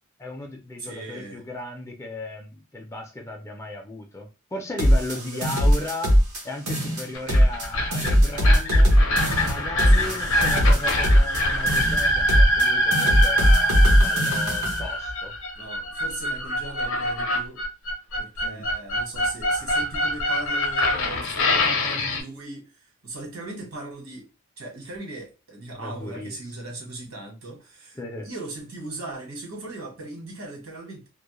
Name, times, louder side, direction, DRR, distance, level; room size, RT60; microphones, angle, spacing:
voice 1, 0.2-6.1 6.4-9.0 9.4-15.3 18.4-18.7 25.7-26.5 28.0-28.3, left 2 dB, 15° left, 0.3 m, -36 dB
voice 2, 0.8-1.4 5.1-5.6 9.8-10.7 15.6-17.6 18.2-24.2 24.6-28.0 28.2-31.1, right 2 dB, 70° right, 1.1 m, -38 dB
sound 1, 4.8-6.4 6.7-7.7 7.9-11.4 11.7-12.7 12.9-14.8, equal, 90° right, 0.9 m, -19 dB
sound 2, 7.1-22.2, left 1 dB, 60° left, 0.6 m, -24 dB
2.3 x 2.0 x 2.8 m
head